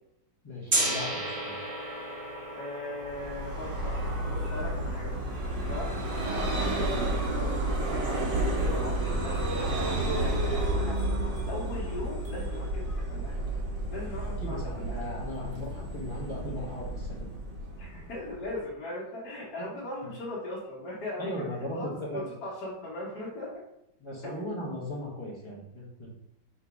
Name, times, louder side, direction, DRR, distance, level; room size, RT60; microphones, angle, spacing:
voice 1, 0.4-1.5 14.2-17.3 19.6-19.7 20.0-20.1 21.2-22.3 24.0-26.1, left 1 dB, 20° left, -4 dB, 0.8 m, -37 dB
Gong, 0.7-6.6, right 1 dB, 40° right, 1.2 m, -35 dB
voice 2, 2.5-5.2 5.6-6.6 7.3-11.0 11.5-13.4 13.9-15.0 17.8-21.4 21.7-23.5 24.2-24.3, left 1 dB, 65° left, -8 dB, 1.6 m, -39 dB
Vehicle, 3.0-18.5, right 1 dB, 75° right, 1.5 m, -31 dB
3.7 x 2.8 x 4.7 m, 0.80 s
omnidirectional pair, 2.0 m